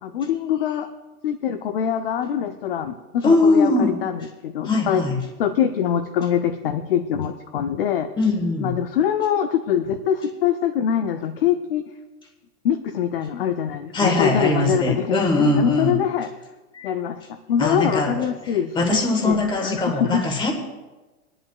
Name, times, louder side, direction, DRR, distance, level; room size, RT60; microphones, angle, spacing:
voice 1, 0.0-0.9 1.2-4.1 4.4-5.0 5.4-8.1 8.6-11.8 12.6-16.3 16.8-20.2, left 9 dB, 40° left, 8 dB, 0.5 m, -24 dB
voice 2, 3.2-4.0 4.6-5.2 8.2-8.8 13.9-16.0 16.7-16.9 17.6-20.5, left 2 dB, 10° left, 3 dB, 1.5 m, -21 dB
22.0 x 11.0 x 2.4 m, 1.2 s
hypercardioid pair, 160°, 45 cm